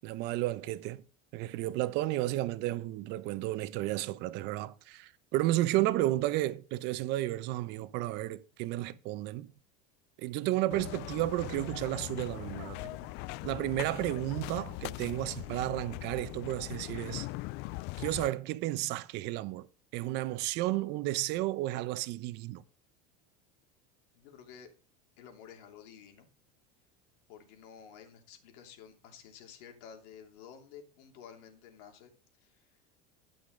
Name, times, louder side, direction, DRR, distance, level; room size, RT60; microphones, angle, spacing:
voice 1, 0.0-1.0 1.3-9.5 10.2-13.0 13.4-17.3 18.0-19.7 19.9-22.6, right 16 dB, 55° right, 0.9 m, -32 dB
sound 1, 10.7-18.3, left 20 dB, 55° left, 0.4 m, -41 dB
voice 2, 24.1-24.7 25.2-26.3 27.3-32.1 32.4-32.7, left 8 dB, 70° left, 3.0 m, -52 dB
12.0 x 10.5 x 3.9 m
supercardioid pair, 125°, 20 cm